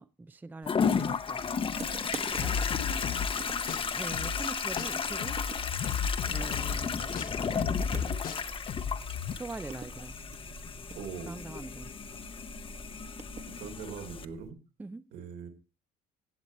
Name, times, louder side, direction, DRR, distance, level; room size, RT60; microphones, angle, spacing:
voice 1, 0.0-1.4 2.4-2.7 3.9-5.4 6.3-8.1 9.3-10.2 11.3-11.9 14.8-15.1, right 3 dB, 10° right, 0.5 m, -43 dB
Toilet flush, 0.7-14.3, left 6 dB, 30° left, 0.8 m, -33 dB
sound 1, 1.7-14.5, right 5 dB, 40° right, 1.3 m, -48 dB
sound 2, 2.4-4.5 4.8-9.3, left 7 dB, 55° left, 1.0 m, -34 dB
voice 2, 10.9-11.3 13.5-14.6 15.1-15.5, right 6 dB, 80° right, 3.5 m, -41 dB
16.0 x 7.7 x 4.2 m
cardioid pair, 110°, 17 cm